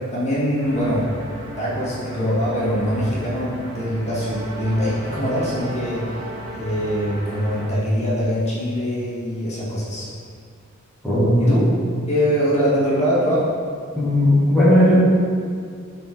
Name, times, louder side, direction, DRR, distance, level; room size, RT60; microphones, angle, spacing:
voice 1, 0.1-1.1 1.6-6.3 6.5-10.1 11.4-11.7 12.1-13.5, equal, 30° left, -8 dB, 1.9 m, -23 dB
sound 1, 0.6-7.7, right 1 dB, 15° right, 1.7 m, -35 dB
voice 2, 11.0-11.5 14.0-15.0, left 1 dB, ahead, -10 dB, 1.9 m, -16 dB
10.0 x 4.3 x 4.6 m, 2.2 s
head